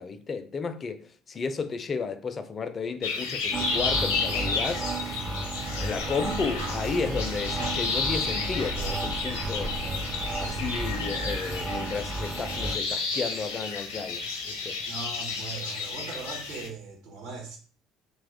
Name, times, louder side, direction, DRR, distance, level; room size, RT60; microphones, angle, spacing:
voice 1, 0.0-4.9 5.8-9.8 10.4-14.8, left 5 dB, 35° left, 0.3 m, -33 dB
sound 1, 3.0-16.7, left 4 dB, 75° left, 0.6 m, -32 dB
sound 2, 3.5-12.8, right 2 dB, 30° right, 0.4 m, -33 dB
sound 3, 6.0-11.0, right 2 dB, 85° right, 0.8 m, -39 dB
voice 2, 14.8-17.6, right 4 dB, 70° right, 1.1 m, -39 dB
2.9 x 2.2 x 3.5 m
figure-of-eight pair, 55°, 0 cm